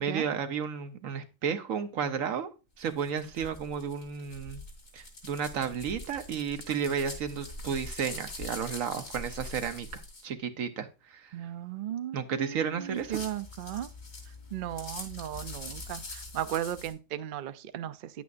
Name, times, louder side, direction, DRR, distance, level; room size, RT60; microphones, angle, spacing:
voice 1, 0.0-2.5 2.8-4.6 4.9-9.9 10.2-11.3 12.1-13.2, right 7 dB, 85° right, 1.3 m, -32 dB
sound 1, 2.8-10.2 12.9-16.9, left 2 dB, 80° left, 2.7 m, -43 dB
voice 2, 11.3-13.9 14.5-18.0, right 11 dB, 60° right, 0.5 m, -36 dB
9.4 x 8.3 x 2.5 m
omnidirectional pair, 1.4 m